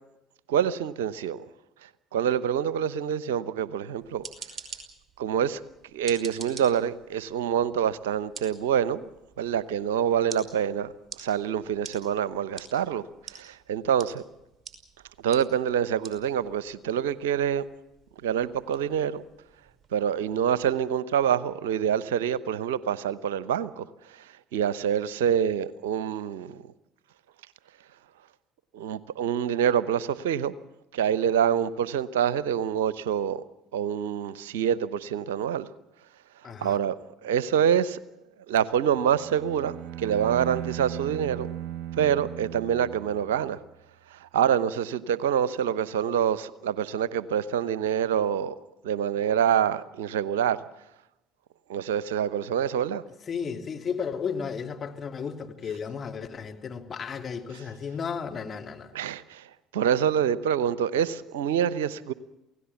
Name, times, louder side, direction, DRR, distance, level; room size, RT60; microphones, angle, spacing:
voice 1, 0.5-1.4 2.1-4.2 5.2-5.6 5.9-9.1 9.4-10.9 11.2-13.0 13.3-14.2 15.2-17.6 18.2-19.2 19.9-23.8 24.5-26.6 28.7-30.5 30.9-33.4 33.7-35.7 36.6-36.9 37.2-38.0 38.5-41.5 42.0-43.6 44.2-48.5 48.8-50.6 51.7-53.0 58.9-59.4 59.7-62.1, right 9 dB, 75° right, 0.8 m, -26 dB
sound 1, 3.9-20.8, right 5 dB, 30° right, 5.4 m, -48 dB
voice 2, 36.4-36.8 53.2-58.9, left 6 dB, 40° left, 3.0 m, -34 dB
Bowed string instrument, 38.8-43.6, right 12 dB, 60° right, 1.5 m, -37 dB
28.5 x 17.0 x 7.1 m
hypercardioid pair, 60°, 0 cm